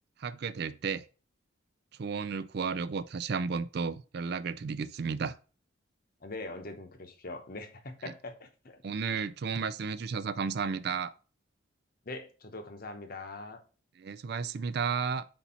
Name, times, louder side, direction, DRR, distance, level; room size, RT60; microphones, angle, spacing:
voice 1, 0.2-1.0 2.0-5.4 8.8-11.1 14.0-15.2, right 5 dB, 55° right, 0.4 m, -33 dB
voice 2, 6.2-8.8 12.0-13.6, left 2 dB, 50° left, 0.9 m, -42 dB
4.4 x 4.1 x 5.5 m
head